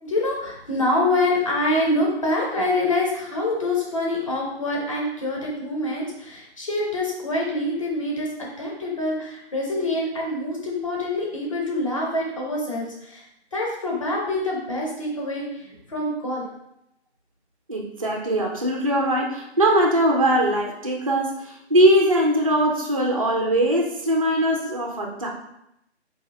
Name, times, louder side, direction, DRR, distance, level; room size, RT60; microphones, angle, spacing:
voice 1, 0.0-8.3 8.6-13.3 13.5-16.5, left 1 dB, 30° left, -2 dB, 0.8 m, -25 dB
voice 2, 17.7-25.3, right 1 dB, 30° right, 0 dB, 0.4 m, -21 dB
4.5 x 2.7 x 3.4 m, 0.80 s
figure-of-eight pair, 155°, 34 cm